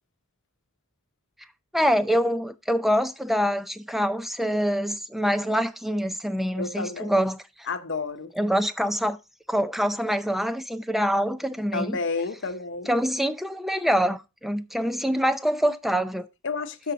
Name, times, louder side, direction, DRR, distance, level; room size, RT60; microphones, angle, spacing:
voice 1, 1.7-7.7 8.4-9.2 9.5-12.0 12.9-16.3, equal, ahead, 0.5 m, -25 dB
voice 2, 6.5-7.1 7.7-8.3 11.7-12.9 16.4-16.9, left 4 dB, 60° left, 0.9 m, -30 dB
12.5 x 4.7 x 4.0 m
head